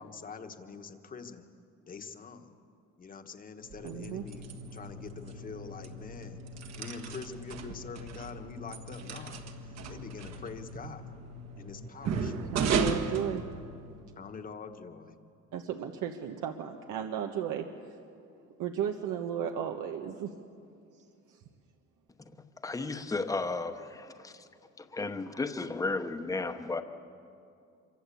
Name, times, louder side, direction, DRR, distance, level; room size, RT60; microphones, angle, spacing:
voice 1, 0.0-1.4 1.9-2.6 2.9-6.4 6.8-11.1 11.6-12.7 14.2-15.1, left 5 dB, 30° left, 7 dB, 1.3 m, -45 dB
sound 1, 3.6-14.1, right 4 dB, 60° right, 1.7 m, -36 dB
voice 2, 3.8-4.2 12.5-13.4 15.5-17.6 18.6-20.3 21.3-21.4, right 9 dB, 85° right, 4 dB, 1.4 m, -34 dB
voice 3, 22.6-24.5 24.8-26.8, left 3 dB, 10° left, 8 dB, 1.0 m, -34 dB
26.5 x 24.0 x 8.5 m, 2.5 s
cardioid pair, 175°, 30 cm